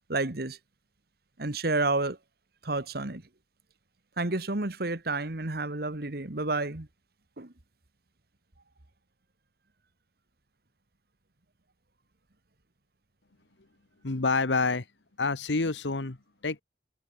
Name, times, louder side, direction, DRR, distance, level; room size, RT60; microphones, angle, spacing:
voice 1, 0.1-0.6 1.4-2.2 2.6-3.2 4.2-6.9 7.4-7.5, right 2 dB, 55° right, 1.7 m, -30 dB
voice 2, 14.0-14.8 15.2-16.2 16.4-16.6, left 3 dB, 80° left, 1.3 m, -27 dB
head